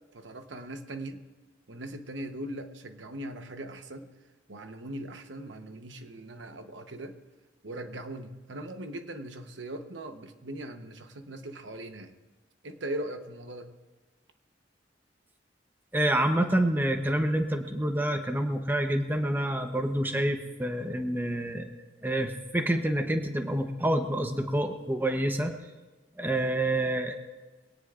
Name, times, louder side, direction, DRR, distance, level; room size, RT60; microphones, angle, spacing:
voice 1, 0.1-1.2 1.7-4.1 4.5-7.2 7.6-12.1 12.6-13.7, right 1 dB, 75° right, 7 dB, 1.0 m, -40 dB
voice 2, 15.9-21.7 22.0-25.5 26.2-27.1, right 1 dB, 10° right, 5 dB, 0.9 m, -27 dB
22.5 x 17.5 x 2.5 m, 1.2 s
head